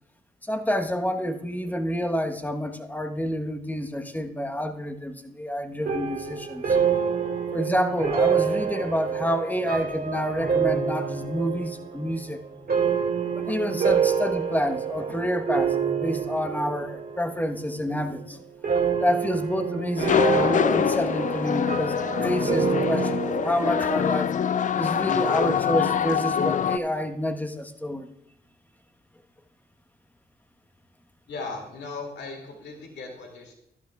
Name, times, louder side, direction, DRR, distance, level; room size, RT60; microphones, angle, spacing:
voice 1, 0.5-6.8 7.5-12.4 13.3-18.4 19.0-24.3 24.8-28.1, equal, 10° left, 7 dB, 1.1 m, -28 dB
sound 1, 5.8-17.3 17.6-18.2 18.6-24.0, right 7 dB, 55° right, 2.0 m, -27 dB
sound 2, 20.0-26.8, left 8 dB, 45° left, 0.4 m, -24 dB
voice 2, 31.3-33.5, left 3 dB, 70° left, 2 dB, 2.4 m, -37 dB
13.5 x 11.5 x 2.3 m, 0.74 s
supercardioid pair, 55°, 18 cm